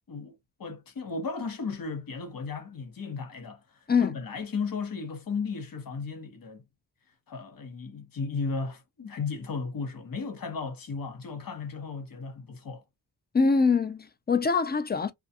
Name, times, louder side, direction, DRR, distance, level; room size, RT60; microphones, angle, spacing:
voice 1, 0.6-3.6 4.0-6.6 7.3-12.8, left 4 dB, 55° left, 1.0 m, -35 dB
voice 2, 13.3-15.1, left 4 dB, 25° left, 0.4 m, -24 dB
2.3 x 2.2 x 2.7 m
cardioid pair, 80°, 41 cm